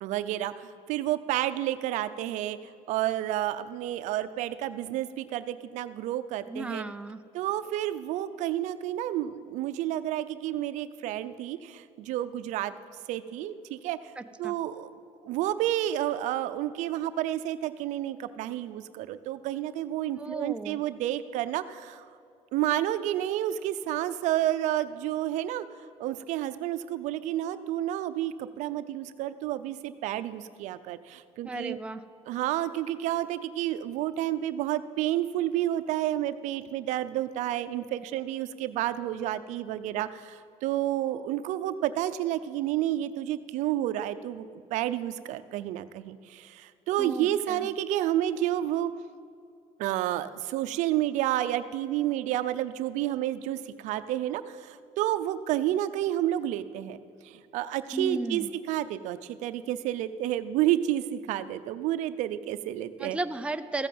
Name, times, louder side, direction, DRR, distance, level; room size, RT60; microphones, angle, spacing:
voice 1, 0.0-2.6 2.9-6.8 7.3-12.7 13.1-14.0 14.4-14.9 15.2-22.0 22.5-25.7 26.0-31.8 32.3-48.9 49.8-57.0 57.2-63.2, right 13 dB, 80° right, 12 dB, 0.6 m, -30 dB
voice 2, 6.5-7.2 14.2-14.5 20.2-20.8 31.4-32.0 47.0-47.7 57.9-58.5 63.0-63.9, right 2 dB, 10° right, 8 dB, 0.6 m, -34 dB
14.5 x 9.0 x 7.8 m, 2.4 s
cardioid pair, 110°, 12 cm